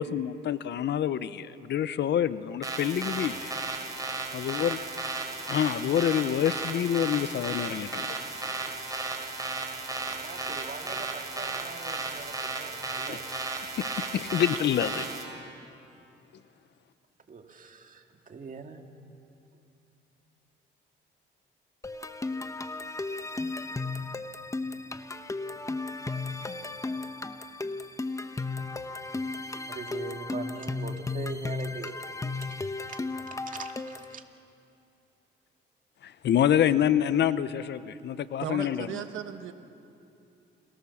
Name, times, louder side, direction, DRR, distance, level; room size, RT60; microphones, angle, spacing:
voice 1, 0.0-3.5 4.3-4.8 5.5-8.1 13.1-13.2 13.8-15.1 36.0-38.9, left 10 dB, 60° left, 15 dB, 0.8 m, -27 dB
sound 1, 2.6-15.2, right 3 dB, 15° right, 4.5 m, -34 dB
voice 2, 10.1-13.2 17.3-18.8 29.7-32.0 32.3-32.5 32.9-33.0 33.3-34.2, right 5 dB, 40° right, 4 dB, 2.2 m, -42 dB
sound 2, 21.8-34.1, left 3 dB, 15° left, 1.0 m, -35 dB
voice 3, 38.4-39.5, right 9 dB, 80° right, 8 dB, 1.4 m, -36 dB
29.0 x 18.5 x 7.2 m, 2.8 s
cardioid pair, 90°, 20 cm